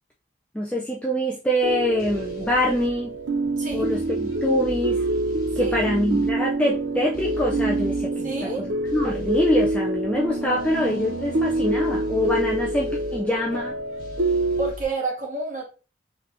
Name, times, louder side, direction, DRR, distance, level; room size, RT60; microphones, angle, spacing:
voice 1, 0.5-3.1 3.7-5.1 5.6-8.7 8.9-13.8, left 1 dB, 5° left, -2 dB, 0.4 m, -24 dB
sound 1, 1.6-14.7, right 2 dB, 80° right, 0.7 m, -26 dB
sound 2, 2.0-2.9 3.7-6.3 7.1-8.0 8.8-9.8 10.6-13.2 14.0-14.8, left 1 dB, 50° left, 1.2 m, -38 dB
voice 2, 3.6-3.9 5.6-5.8 8.2-8.7 14.6-15.6, right 3 dB, 40° right, 0 dB, 1.4 m, -29 dB
4.3 x 3.4 x 2.6 m, 0.33 s
head